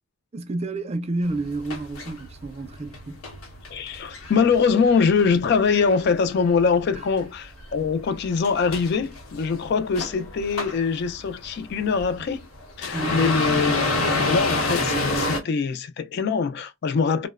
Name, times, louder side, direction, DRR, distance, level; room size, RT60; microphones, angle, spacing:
voice 1, 0.3-3.3 6.9-7.0 12.9-13.2, right 2 dB, 30° right, 0.3 m, -30 dB
sound 1, 1.3-6.6 6.9-15.4, left 2 dB, 85° left, 0.8 m, -29 dB
voice 2, 3.7-12.5 12.8-17.3, left 5 dB, 50° left, 0.3 m, -23 dB
2.9 x 2.0 x 2.3 m
head